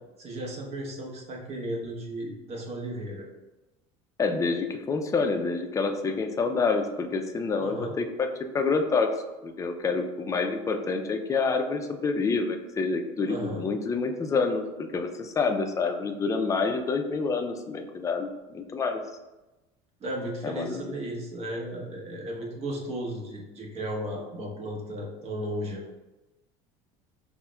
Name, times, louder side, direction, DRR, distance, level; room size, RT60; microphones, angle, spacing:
voice 1, 0.2-3.3 7.6-8.0 13.3-13.7 20.0-25.9, right 1 dB, 45° right, -1 dB, 1.0 m, -35 dB
voice 2, 4.2-8.3 8.5-9.1 9.4-19.0 20.4-20.8, left 4 dB, 20° left, 5 dB, 0.4 m, -27 dB
5.5 x 2.1 x 2.3 m, 1.1 s
supercardioid pair, 100°, 15 cm